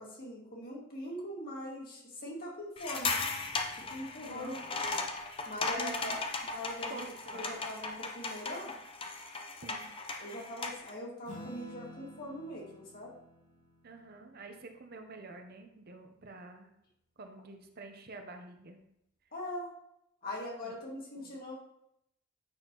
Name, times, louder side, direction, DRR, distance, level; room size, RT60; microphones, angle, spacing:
voice 1, 0.0-3.1 3.8-4.6 4.9-5.0 5.5-7.0 7.3-8.7 10.2-13.1 19.3-19.7 20.2-21.5, left 1 dB, 45° left, -3 dB, 2.1 m, -42 dB
sound 1, 2.8-10.9, left 3 dB, 25° left, 0.6 m, -37 dB
voice 2, 4.3-4.6 5.8-6.2 6.9-7.6 9.6-9.9 13.8-16.7 17.2-18.8 20.6-20.7 21.2-21.4, right 3 dB, 45° right, 5 dB, 0.7 m, -48 dB
Acoustic guitar / Strum, 11.2-16.1, left 1 dB, 80° left, 2.2 m, -52 dB
8.7 x 6.1 x 3.0 m, 0.78 s
head